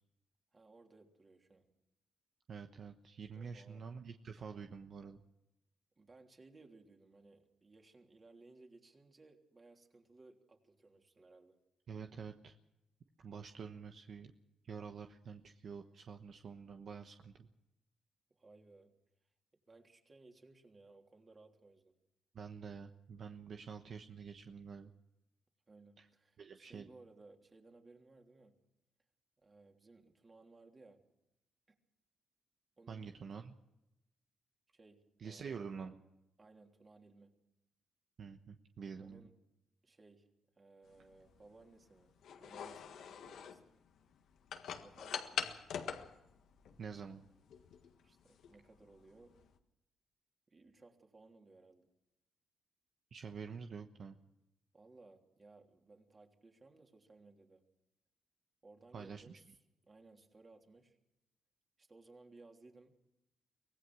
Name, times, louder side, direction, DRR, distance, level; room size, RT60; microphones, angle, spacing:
voice 1, 0.5-1.7 3.3-3.8 6.0-11.6 18.3-18.9 19.7-21.9 25.7-28.6 29.4-31.0 31.7-31.8 32.8-33.1 34.7-35.8 36.4-37.3 39.0-39.3 39.8-40.3 40.6-43.6 44.7-45.6 48.0-49.4 50.5-51.9 54.7-57.6 58.6-59.6 59.8-61.0 61.8-63.0, right 3 dB, 35° right, 3 dB, 3.3 m, -61 dB
voice 2, 2.5-5.2 11.9-12.5 13.2-14.3 14.6-17.5 22.3-24.9 26.0-26.1 26.4-26.9 32.9-33.5 35.2-36.0 38.2-39.3 46.8-47.2 53.1-54.2 58.9-59.4, right 6 dB, 60° right, 6 dB, 1.1 m, -47 dB
sound 1, 40.9-49.6, left 8 dB, 75° left, 1.6 m, -45 dB
24.0 x 17.5 x 6.2 m, 0.90 s
cardioid pair, 70°, 0 cm